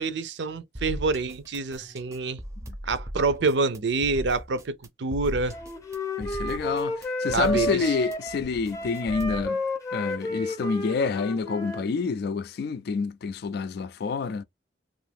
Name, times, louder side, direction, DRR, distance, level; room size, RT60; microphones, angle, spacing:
voice 1, 0.0-2.4 2.8-5.6 7.3-7.8, right 3 dB, 75° right, 0.5 m, -27 dB
sound 1, 0.7-9.5, equal, 15° right, 0.5 m, -39 dB
Wind instrument woodwind instrument, 5.5-11.9, left 1 dB, 20° left, 0.7 m, -31 dB
voice 2, 6.2-9.6 9.9-14.4, left 5 dB, 60° left, 0.3 m, -28 dB
2.7 x 2.5 x 3.4 m
head